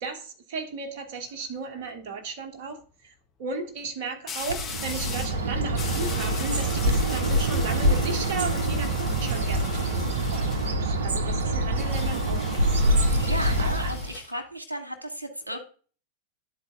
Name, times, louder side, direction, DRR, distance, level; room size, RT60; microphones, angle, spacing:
voice 1, 0.0-3.1 3.4-13.5, right 4 dB, 50° right, 1.3 m, -36 dB
sound 1, 1.1-1.5 4.3-5.4 5.8-10.8 11.7-14.3, left 6 dB, 25° left, 1.2 m, -39 dB
Bird, 4.5-14.2, right 1 dB, 65° right, 0.7 m, -25 dB
voice 2, 13.2-15.6, right 1 dB, 85° right, 1.3 m, -34 dB
12.0 x 4.1 x 2.5 m
figure-of-eight pair, 90°, 0 cm